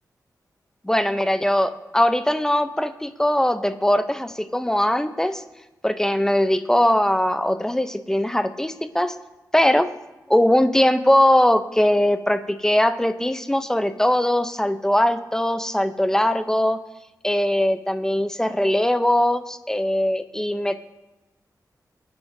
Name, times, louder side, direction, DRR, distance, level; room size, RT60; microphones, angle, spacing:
voice 1, 0.8-5.4 5.8-9.1 9.5-9.9 10.3-16.8 17.2-20.8, left 1 dB, 10° left, 10 dB, 0.6 m, -20 dB
23.0 x 9.4 x 2.7 m, 1.0 s
wide cardioid pair, 95°, 7 cm